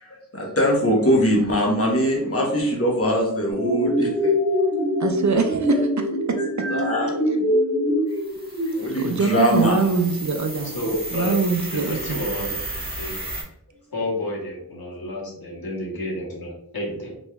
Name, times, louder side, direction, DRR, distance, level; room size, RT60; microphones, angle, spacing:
voice 1, 0.0-4.3 5.0-5.1 6.7-7.2 8.8-9.9, equal, 40° left, -1 dB, 1.0 m, -22 dB
sound 1, 3.5-8.7, equal, 5° left, 1.0 m, -23 dB
voice 2, 5.0-6.7 8.7-10.7 11.1-12.2, right 4 dB, 50° right, 5 dB, 0.5 m, -24 dB
sound 2, 8.1-13.4, right 2 dB, 25° right, 1.3 m, -34 dB
voice 3, 10.7-11.4 11.7-12.6 13.0-13.2 13.9-17.1, left 1 dB, 70° left, -5 dB, 1.3 m, -30 dB
3.2 x 3.0 x 2.3 m, 0.71 s
wide cardioid pair, 40°, 37 cm